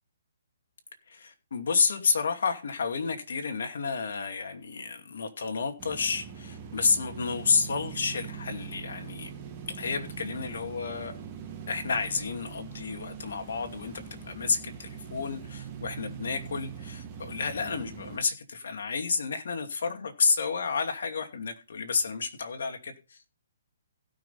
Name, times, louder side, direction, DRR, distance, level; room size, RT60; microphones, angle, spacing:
voice 1, 1.1-9.3 9.7-11.1 11.7-23.3, left 5 dB, 70° left, 2.6 m, -30 dB
sound 1, 5.8-18.2, right 7 dB, 20° right, 2.3 m, -42 dB
17.0 x 6.2 x 4.3 m
hypercardioid pair, 165°, 0 cm